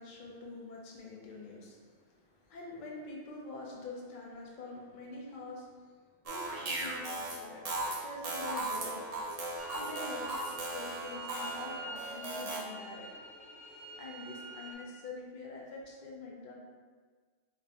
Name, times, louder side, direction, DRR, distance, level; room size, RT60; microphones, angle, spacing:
voice 1, 0.0-5.9 6.2-7.7 8.0-9.1 9.8-10.3 10.7-13.1 14.0-16.6, left 3 dB, 50° left, -2 dB, 0.6 m, -45 dB
sound 1, 6.3-12.6, right 2 dB, 50° right, 0.4 m, -37 dB
sound 2, 9.6-14.8, right 1 dB, 85° left, 1.3 m, -46 dB
5.1 x 2.2 x 2.7 m, 1.5 s
omnidirectional pair, 1.4 m